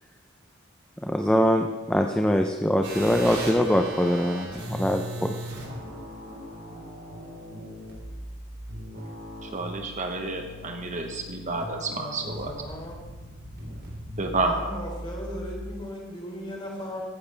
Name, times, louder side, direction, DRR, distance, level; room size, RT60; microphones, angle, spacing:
voice 1, 1.0-5.3, equal, 5° left, 4 dB, 0.6 m, -23 dB
sound 1, 2.8-15.7, right 1 dB, 55° right, 4.1 m, -39 dB
voice 2, 9.4-12.5 14.2-14.6, right 3 dB, 35° right, 4 dB, 1.1 m, -30 dB
voice 3, 11.7-13.0 14.4-17.0, equal, 25° left, -2 dB, 3.5 m, -37 dB
15.0 x 13.0 x 3.4 m, 1.3 s
head